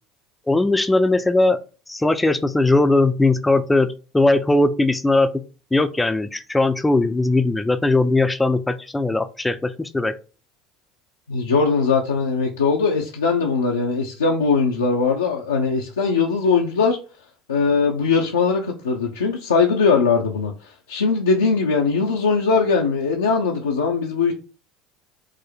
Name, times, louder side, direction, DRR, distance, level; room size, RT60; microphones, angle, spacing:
voice 1, 0.5-1.6 1.9-5.4 5.7-10.1, left 2 dB, 10° left, 0.4 m, -19 dB
voice 2, 11.3-17.0 17.5-24.3, left 5 dB, 85° left, 0.5 m, -20 dB
4.8 x 2.1 x 4.4 m
hypercardioid pair, 70°, 0 cm